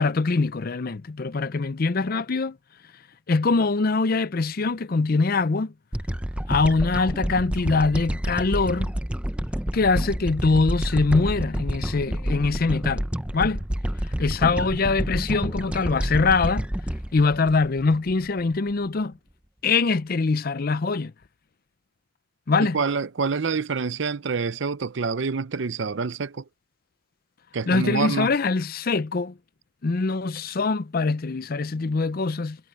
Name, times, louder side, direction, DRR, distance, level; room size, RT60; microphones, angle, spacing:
voice 1, 0.0-2.6 3.3-5.7 6.5-8.9 9.7-13.1 13.3-13.6 14.2-16.7 17.1-19.2 19.6-21.1 22.5-22.8 27.7-29.3 29.8-32.6, left 4 dB, 45° left, 0.5 m, -23 dB
sound 1, 5.9-18.4, equal, 5° right, 0.6 m, -29 dB
voice 2, 22.6-26.4 27.5-28.3, right 4 dB, 60° right, 0.6 m, -27 dB
head